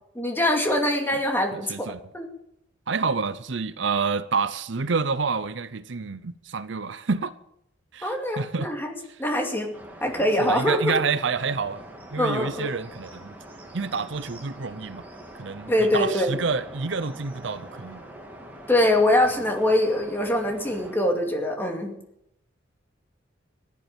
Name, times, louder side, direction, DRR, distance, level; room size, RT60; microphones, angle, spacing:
voice 1, 0.1-2.3 8.0-8.9 9.2-9.7 10.0-10.9 12.2-12.7 15.7-16.4 18.7-22.0, left 1 dB, 10° left, 2.4 m, -23 dB
voice 2, 1.5-2.0 2.9-7.3 7.9-8.7 10.4-11.8 12.1-13.4 13.7-15.0 15.3-18.0, right 4 dB, 65° right, 0.7 m, -28 dB
sound 1, 9.7-21.0, right 1 dB, 10° right, 2.5 m, -44 dB
15.5 x 11.0 x 7.2 m
head